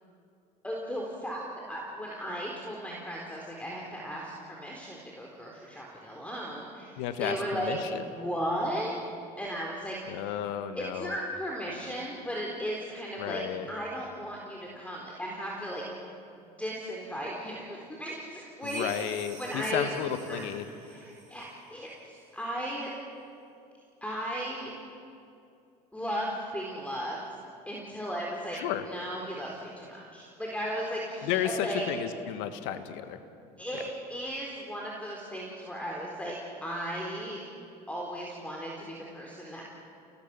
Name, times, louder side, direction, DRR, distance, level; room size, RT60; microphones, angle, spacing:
voice 1, 0.6-1.4 1.7-8.9 9.4-10.2 10.8-13.4 13.7-15.8 16.6-20.4 20.8-21.4 21.7-22.9 24.0-24.7 25.9-27.2 27.7-28.6 28.8-31.8 33.6-33.8 34.1-37.4 37.9-39.6, equal, 5° left, -2 dB, 4.1 m, -36 dB
voice 2, 7.0-8.1 10.1-11.1 13.2-13.7 18.6-20.7 28.5-28.9 31.2-33.2 33.7-33.9, left 10 dB, 65° left, 9 dB, 1.6 m, -33 dB
sound 1, 18.6-21.6, right 6 dB, 60° right, 5.9 m, -50 dB
30.0 x 18.5 x 6.2 m, 2.6 s
hypercardioid pair, 70°, 21 cm